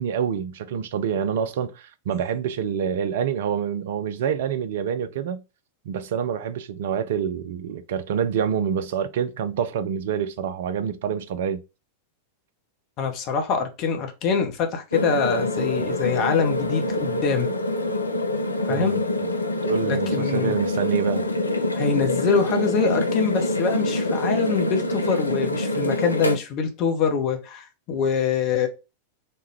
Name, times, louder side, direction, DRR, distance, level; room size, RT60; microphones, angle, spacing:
voice 1, 0.0-5.4 5.9-11.6 18.7-19.0 19.6-21.2, right 8 dB, 55° right, 0.4 m, -27 dB
voice 2, 13.0-17.5 18.7-19.0 19.8-20.6 21.7-28.7, left 5 dB, 40° left, 0.7 m, -24 dB
sound 1, 14.9-26.4, left 1 dB, 80° left, 0.4 m, -25 dB
3.3 x 2.2 x 3.1 m
figure-of-eight pair, 90°, 0 cm